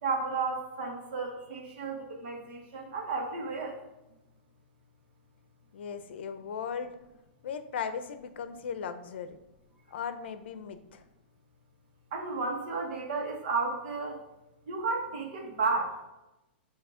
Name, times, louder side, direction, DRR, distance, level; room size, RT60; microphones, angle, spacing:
voice 1, 0.0-3.8 12.1-14.2 14.7-16.1, right 4 dB, 55° right, 1 dB, 1.5 m, -33 dB
voice 2, 5.7-6.9 7.4-9.4 9.9-11.0, left 7 dB, 75° left, 10 dB, 0.6 m, -37 dB
7.4 x 2.9 x 4.9 m, 0.97 s
supercardioid pair, 160°, 6 cm